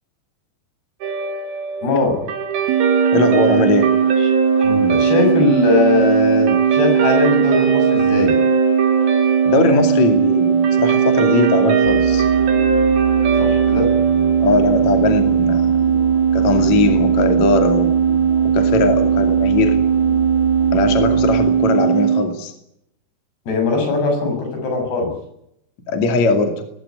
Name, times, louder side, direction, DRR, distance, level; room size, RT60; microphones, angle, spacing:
Guitar, 1.0-15.6, right 3 dB, 70° right, 4.7 m, -24 dB
voice 1, 1.8-2.2 4.2-4.3 4.6-8.4 13.4-13.9 23.5-25.1, left 3 dB, 80° left, 3 dB, 9.2 m, -20 dB
sound 1, 2.7-22.3, right 8 dB, 50° right, 3.4 m, -17 dB
voice 2, 3.1-3.9 9.5-12.3 14.4-15.7 16.3-17.9 18.5-19.8 20.7-22.5 25.9-26.5, left 4 dB, 45° left, 6 dB, 3.5 m, -19 dB
sound 2, 11.8-21.5, right 1 dB, 30° right, 5.1 m, -29 dB
21.5 x 16.5 x 9.6 m, 0.77 s
omnidirectional pair, 4.7 m